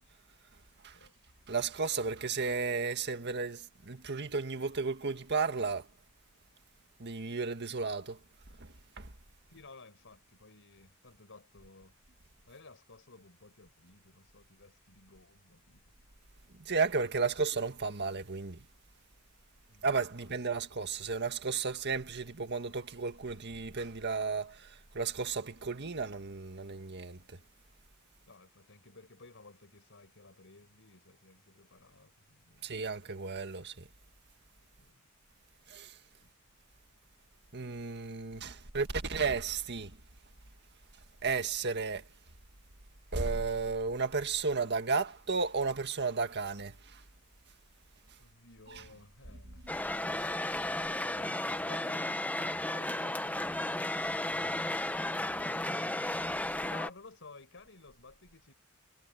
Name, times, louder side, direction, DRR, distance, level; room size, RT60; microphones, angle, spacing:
voice 1, 1.5-5.9 7.0-8.2 8.6-9.1 16.5-18.7 19.8-27.4 32.6-33.9 35.7-36.0 37.5-40.0 41.2-42.1 43.1-47.0 48.7-48.8 49.7-49.8 50.2-50.3, right 4 dB, 50° right, 1.8 m, -34 dB
voice 2, 9.5-12.0 12.5-15.8 19.7-19.9 20.2-20.3 28.3-32.7 34.8-35.0 36.2-36.3 48.2-49.7 50.8-56.0 56.6-58.5, left 3 dB, 60° left, 5.1 m, -56 dB
sound 1, 49.7-56.9, left 1 dB, 5° left, 1.0 m, -34 dB
head